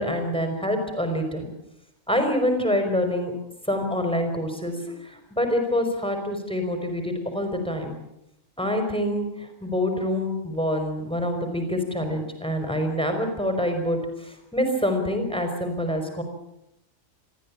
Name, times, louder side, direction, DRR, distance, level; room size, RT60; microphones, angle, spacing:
voice 1, 0.0-1.5 2.1-3.3 3.7-8.0 8.6-9.3 9.6-16.2, left 1 dB, 5° left, 4 dB, 5.3 m, -26 dB
27.0 x 15.5 x 8.9 m, 0.83 s
omnidirectional pair, 1.3 m